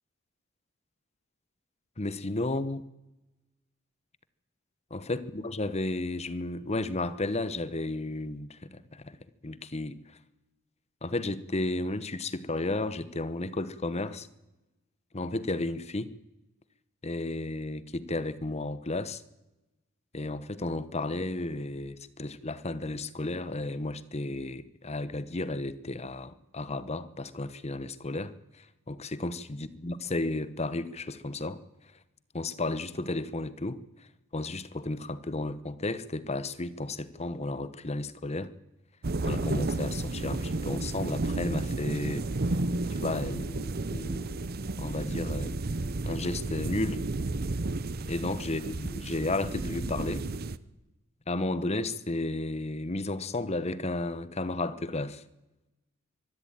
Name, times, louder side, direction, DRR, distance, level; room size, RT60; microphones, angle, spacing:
voice 1, 2.0-2.8 4.9-9.2 9.4-10.2 11.0-14.3 15.1-16.1 17.0-19.2 20.1-31.6 32.3-33.8 34.3-38.5 39.2-42.3 42.9-44.4 44.8-45.6 46.0-47.0 48.0-50.2 51.3-55.2, left 2 dB, 30° left, 1.0 m, -33 dB
sound 1, 39.0-50.6, right 2 dB, 45° right, 0.8 m, -32 dB
24.0 x 13.0 x 9.0 m
head